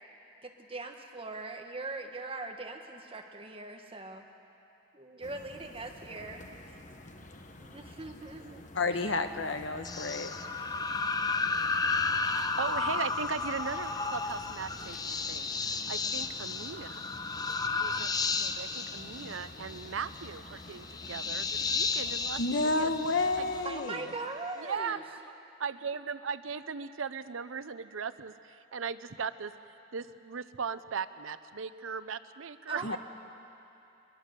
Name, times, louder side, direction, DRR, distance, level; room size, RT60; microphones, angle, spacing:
voice 1, 0.4-4.2 4.9-6.4 7.6-8.6 8.9-9.2 23.6-25.0 32.7-33.0, right 3 dB, 30° right, 3 dB, 1.5 m, -41 dB
sound 1, 5.2-23.7, left 2 dB, 40° left, 1.2 m, -49 dB
voice 2, 8.7-10.3 22.4-24.0 32.8-33.0, left 3 dB, 70° left, 7 dB, 1.1 m, -30 dB
sound 2, 9.8-23.7, left 4 dB, 20° left, 0.6 m, -33 dB
voice 3, 12.3-17.1 17.8-22.9 23.4-23.5 24.6-25.2 25.6-29.5 29.9-33.0, right 6 dB, 90° right, 13 dB, 0.7 m, -38 dB
22.5 x 22.0 x 6.7 m, 2.8 s
head